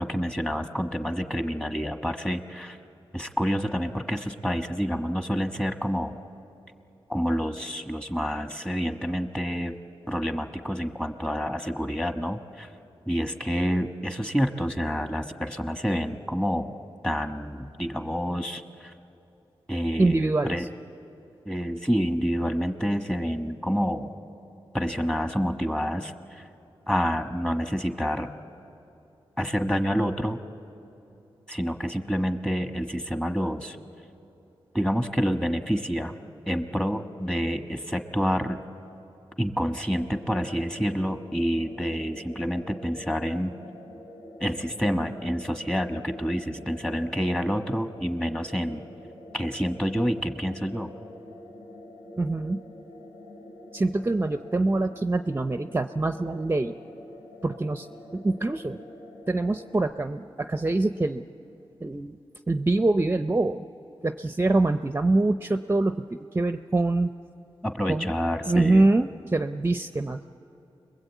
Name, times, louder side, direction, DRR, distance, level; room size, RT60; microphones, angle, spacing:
voice 1, 0.0-2.8 3.1-6.2 7.1-9.7 10.1-12.7 13.1-16.7 17.0-18.9 19.7-20.7 21.4-24.1 24.7-26.4 26.9-28.3 29.4-30.4 31.5-33.8 34.7-36.1 36.5-38.6 39.4-43.5 44.4-48.8 49.3-50.9 67.6-68.9, equal, 10° left, 6 dB, 1.3 m, -28 dB
voice 2, 20.0-20.7 52.2-52.6 53.7-56.8 57.4-57.9 58.1-58.8 59.3-61.3 61.8-62.2 62.5-63.6 64.0-67.1 67.9-68.1 68.5-70.3, right 2 dB, 25° right, 9 dB, 0.5 m, -24 dB
sound 1, 39.9-59.9, left 1 dB, 90° left, 3.8 m, -46 dB
29.5 x 21.5 x 8.3 m, 2.9 s
cardioid pair, 75°, 10 cm